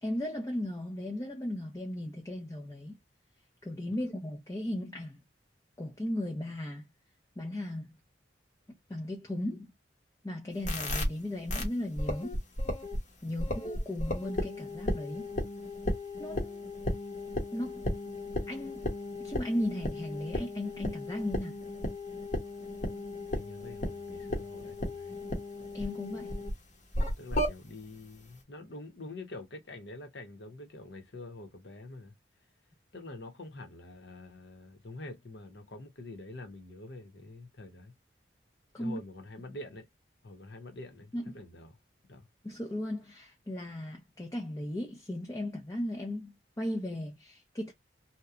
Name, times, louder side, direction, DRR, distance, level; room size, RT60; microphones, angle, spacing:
voice 1, 0.0-3.0 3.6-5.2 5.8-6.9 7.4-8.0 8.9-9.7 10.2-12.4 13.2-15.3 16.2-16.7 17.5-17.9 18.5-18.9 19.2-21.6 25.7-26.3 38.7-39.0 41.1-41.2 42.4-47.7, left 1 dB, 20° left, 0.5 m, -36 dB
sound 1, 10.6-11.1 11.5-11.7 12.0-13.0 13.4-26.5 26.9-27.5, left 1 dB, 40° left, 0.8 m, -35 dB
voice 2, 13.2-13.6 23.3-25.2 27.2-32.1 32.9-37.9 38.8-39.9 40.2-41.8 42.1-42.3, left 2 dB, 70° left, 0.9 m, -46 dB
2.8 x 2.2 x 2.4 m
head